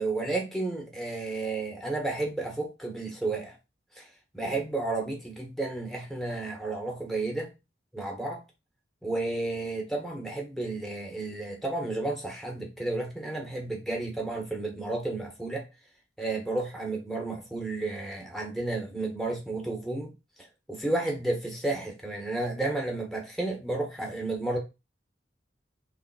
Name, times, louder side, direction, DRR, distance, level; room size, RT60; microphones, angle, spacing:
voice 1, 0.0-3.5 4.0-4.1 4.3-7.5 7.9-8.4 9.0-15.6 16.2-20.1 20.7-24.6, right 2 dB, ahead, 1.1 m, -32 dB
3.4 x 3.2 x 4.7 m
head